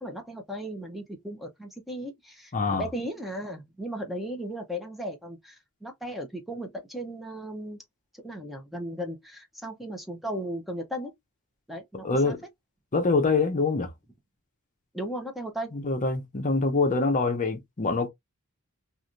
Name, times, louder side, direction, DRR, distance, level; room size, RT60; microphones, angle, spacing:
voice 1, 0.0-7.8 8.2-11.1 11.7-12.4 14.9-15.8, equal, ahead, 0.7 m, -36 dB
voice 2, 2.5-2.8 12.0-12.4 12.9-13.9 15.7-18.1, left 3 dB, 35° left, 0.7 m, -25 dB
3.2 x 2.5 x 2.6 m
head